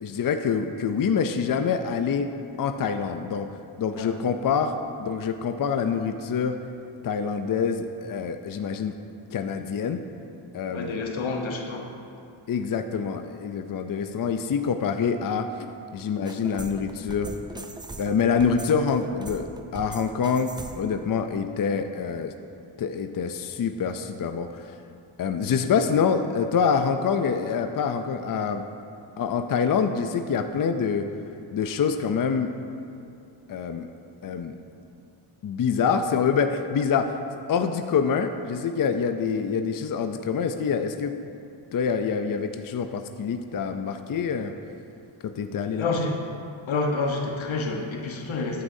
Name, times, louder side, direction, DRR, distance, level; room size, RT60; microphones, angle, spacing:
voice 1, 0.0-2.3 2.6-6.6 7.0-8.9 9.3-10.0 10.5-11.0 12.5-15.7 15.9-17.3 18.0-22.3 22.8-24.8 25.2-28.6 29.2-31.1 31.5-32.5 33.5-33.9 34.2-34.5 35.4-37.2 37.5-41.2 41.7-44.5 45.2-45.9, left 6 dB, 45° left, 7 dB, 0.5 m, -26 dB
voice 2, 10.7-11.9 45.8-46.2 46.7-48.6, left 3 dB, 90° left, 2 dB, 1.2 m, -28 dB
sound 1, 16.2-21.0, right 2 dB, 10° right, 0.4 m, -40 dB
13.5 x 9.7 x 2.7 m, 2.6 s
wide cardioid pair, 100°, 46 cm